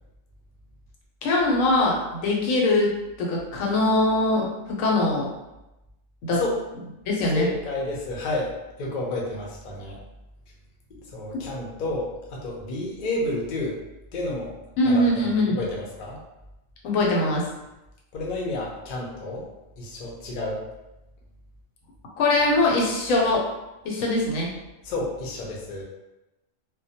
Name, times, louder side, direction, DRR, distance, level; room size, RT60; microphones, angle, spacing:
voice 1, 1.2-2.9 3.2-5.3 6.2-6.4 7.1-7.5 14.8-15.6 16.8-17.4 22.2-23.4 23.8-24.5, left 2 dB, 90° left, -2 dB, 1.0 m, -22 dB
voice 2, 7.3-8.5 8.8-10.0 11.1-13.7 14.1-14.5 14.8-16.2 18.1-19.5 19.8-20.6 24.8-25.8, left 2 dB, 55° left, -3 dB, 0.5 m, -30 dB
2.2 x 2.1 x 2.7 m, 0.96 s
omnidirectional pair, 1.4 m